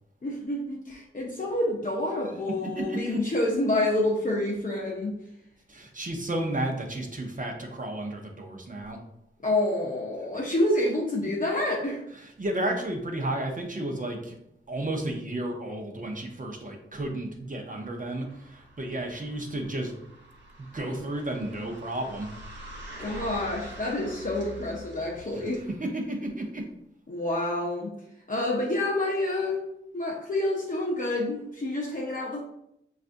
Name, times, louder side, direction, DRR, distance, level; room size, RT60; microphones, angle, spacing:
voice 1, 0.2-5.1 9.4-12.0 23.0-25.6 27.1-27.9 28.3-29.6 29.9-32.4, left 1 dB, 40° left, -4 dB, 0.6 m, -28 dB
voice 2, 2.6-3.2 5.7-9.0 12.2-14.4 14.7-19.9 20.7-22.3 25.4-26.6, right 1 dB, 40° right, 2 dB, 0.6 m, -32 dB
sound 1, 17.7-25.8, equal, 55° right, 1.0 m, -46 dB
5.4 x 2.4 x 2.5 m, 0.79 s
wide cardioid pair, 105°, 21 cm